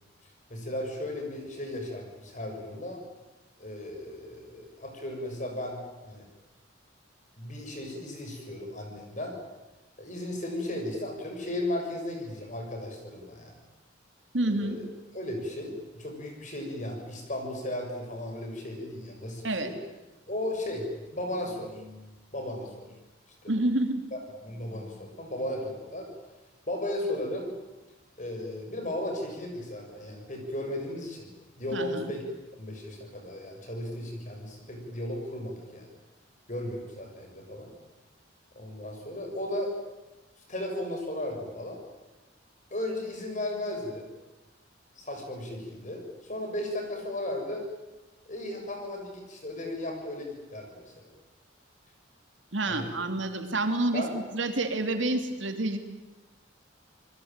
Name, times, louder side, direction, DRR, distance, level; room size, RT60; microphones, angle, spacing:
voice 1, 0.5-3.0 3.6-6.3 7.4-9.4 10.0-13.5 14.5-14.9 15.1-19.7 20.3-22.9 23.4-23.5 24.1-26.1 26.7-27.5 28.2-31.3 31.6-32.2 32.6-35.9 36.5-37.7 38.6-39.7 40.5-41.8 42.7-44.1 45.0-47.7 48.3-51.1 52.7-52.9 53.9-54.1, left 1 dB, 40° left, 3 dB, 6.9 m, -35 dB
voice 2, 14.3-14.8 19.4-19.7 23.5-24.0 31.7-32.1 52.5-55.8, right 2 dB, 75° right, 6 dB, 3.0 m, -28 dB
27.5 x 21.0 x 9.1 m, 1.1 s
head